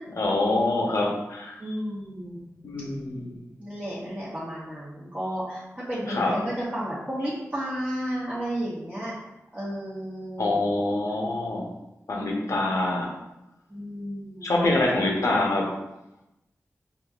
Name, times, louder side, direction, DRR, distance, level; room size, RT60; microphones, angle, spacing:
voice 1, 0.1-1.6 2.6-3.4 6.1-6.3 10.4-11.7 12.1-13.1 14.4-15.7, left 2 dB, 70° left, -1 dB, 0.8 m, -25 dB
voice 2, 1.6-2.4 3.6-9.3 9.5-10.6 12.1-12.3 13.7-14.5, equal, 20° right, -9 dB, 0.8 m, -33 dB
5.0 x 2.6 x 2.4 m, 0.93 s
wide cardioid pair, 95°, 6 cm